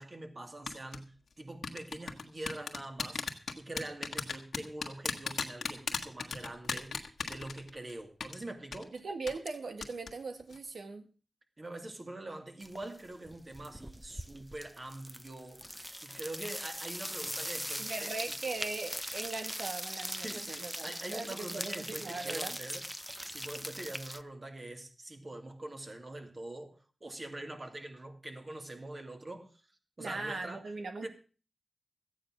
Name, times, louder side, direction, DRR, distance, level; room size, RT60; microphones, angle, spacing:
voice 1, 0.0-3.2 3.6-8.9 11.6-18.1 20.1-22.8 23.3-29.6 30.0-30.7 31.0-31.1, right 1 dB, 40° right, 2.5 m, -44 dB
sound 1, 0.7-1.0 1.6-7.9 8.2-8.3 8.7-8.8 9.3-9.5 9.8-10.1 10.4-10.6, left 5 dB, 80° left, 1.5 m, -35 dB
voice 2, 8.9-11.1 17.8-22.6 30.0-31.1, right 3 dB, 75° right, 1.8 m, -40 dB
sound 2, 12.6-13.0 13.3-24.2, equal, 5° right, 0.7 m, -41 dB
14.0 x 9.0 x 6.2 m
cardioid pair, 65°, 0 cm